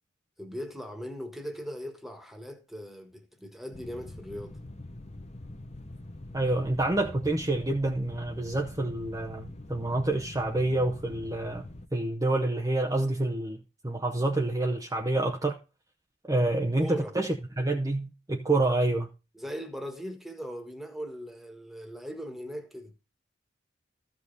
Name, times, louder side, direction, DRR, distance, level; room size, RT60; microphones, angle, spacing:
voice 1, 0.4-4.6 16.4-17.2 19.3-22.9, equal, ahead, 1.5 m, -39 dB
sound 1, 3.7-11.9, left 1 dB, 35° left, 1.0 m, -44 dB
voice 2, 6.3-11.7 11.9-15.6 16.2-17.3 17.6-19.1, right 2 dB, 20° right, 0.8 m, -28 dB
14.0 x 5.3 x 4.0 m
head